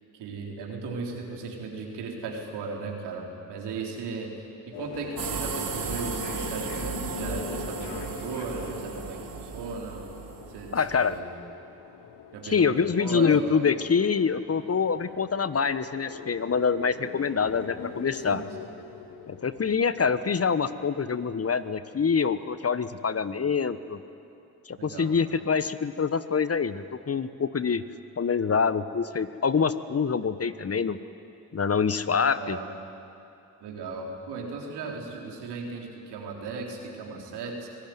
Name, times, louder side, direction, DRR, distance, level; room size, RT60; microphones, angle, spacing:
voice 1, 0.1-4.3 4.8-10.0 10.5-11.4 12.3-13.4 18.3-18.5 24.8-25.2 32.2-32.7 33.6-37.7, right 4 dB, 75° right, 0 dB, 3.8 m, -37 dB
sound 1, 4.7-21.7, left 7 dB, 75° left, 1.9 m, -42 dB
sound 2, 5.2-11.2, right 5 dB, 55° right, 2.5 m, -35 dB
voice 2, 10.7-11.2 12.4-18.4 19.3-24.0 24.7-27.8 28.2-31.0 31.5-32.6, left 5 dB, 35° left, 13 dB, 1.2 m, -25 dB
26.0 x 17.5 x 9.4 m, 2.7 s
hypercardioid pair, 45°, 40 cm